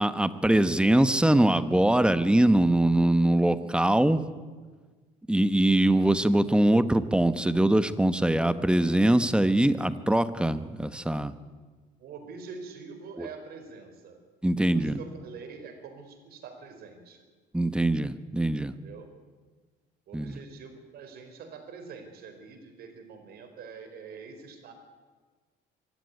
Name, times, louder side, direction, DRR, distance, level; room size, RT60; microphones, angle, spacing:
voice 1, 0.0-4.2 5.3-11.3 13.2-13.3 14.4-15.0 17.5-18.7 20.1-20.4, right 1 dB, 5° right, 12 dB, 1.2 m, -23 dB
voice 2, 12.0-17.2 18.8-19.1 20.1-24.7, right 5 dB, 70° right, 7 dB, 4.5 m, -45 dB
24.5 x 15.0 x 9.6 m, 1.4 s
cardioid pair, 110°, 17 cm